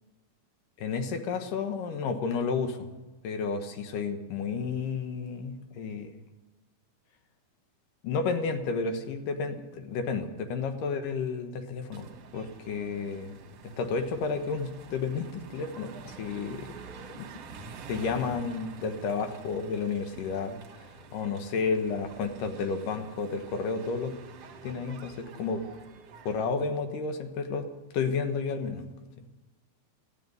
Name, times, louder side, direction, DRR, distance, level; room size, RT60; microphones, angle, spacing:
voice 1, 0.8-2.9 3.2-6.2 8.0-12.1 12.3-13.4 13.8-16.7 17.1-17.3 17.9-20.6 21.1-24.2 24.6-25.6 26.3-27.7 27.9-28.9, left 5 dB, 70° left, 7 dB, 2.6 m, -31 dB
sound 1, 11.9-26.5, right 5 dB, 55° right, 1.9 m, -48 dB
14.0 x 11.0 x 9.3 m, 1.1 s
omnidirectional pair, 4.3 m